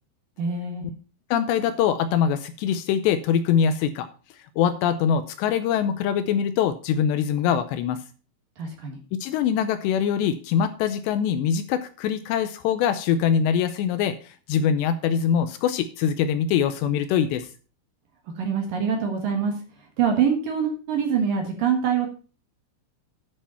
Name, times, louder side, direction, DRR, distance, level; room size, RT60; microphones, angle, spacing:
voice 1, 0.4-0.9 8.6-9.0 18.4-19.5 20.0-22.1, right 7 dB, 60° right, 3 dB, 2.7 m, -24 dB
voice 2, 1.3-4.1 4.6-8.0 9.1-17.5, left 8 dB, 80° left, 11 dB, 2.6 m, -23 dB
10.0 x 6.9 x 5.6 m, 0.38 s
omnidirectional pair, 5.4 m